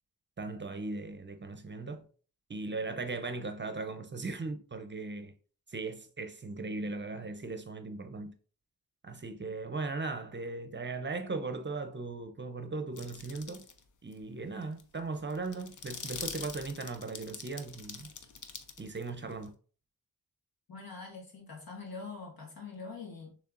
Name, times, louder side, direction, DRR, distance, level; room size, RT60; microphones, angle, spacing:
voice 1, 0.4-2.1 2.5-5.3 5.7-8.4 9.0-13.7 14.0-18.1 18.8-19.5, right 3 dB, 30° right, 0.6 m, -38 dB
sound 1, 13.0-13.8 14.1-14.2 14.6-19.5, left 6 dB, 55° left, 0.7 m, -44 dB
voice 2, 20.7-23.4, left 4 dB, 75° left, 1.7 m, -44 dB
6.5 x 3.3 x 2.5 m
cardioid pair, 80°, 36 cm